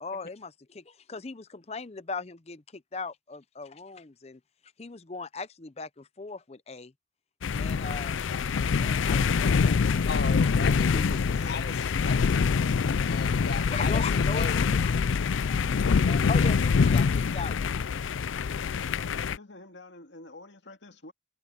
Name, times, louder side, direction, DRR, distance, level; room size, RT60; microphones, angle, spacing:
voice 1, 0.0-4.4 4.8-6.9 7.6-8.2 8.8-10.2 10.8-11.6 13.5-14.9 15.4-18.0, left 4 dB, 35° left, 0.6 m, -39 dB
sound 1, 7.4-19.4, left 5 dB, 85° left, 0.4 m, -25 dB
voice 2, 10.1-12.5 13.1-14.7, left 4 dB, 55° left, 1.1 m, -37 dB
voice 3, 14.0-14.8 19.4-21.1, left 2 dB, 70° left, 2.2 m, -48 dB
head